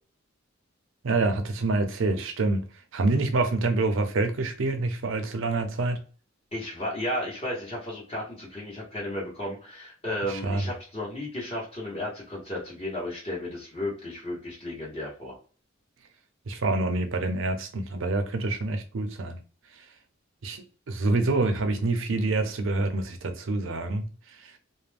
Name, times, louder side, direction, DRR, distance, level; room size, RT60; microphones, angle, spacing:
voice 1, 1.0-2.6 2.9-6.0 10.3-10.7 16.5-19.4 20.4-24.0 24.4-24.5, right 2 dB, 65° right, 0.6 m, -26 dB
voice 2, 6.5-15.4, left 1 dB, 30° left, 1.1 m, -34 dB
2.5 x 2.1 x 3.3 m
head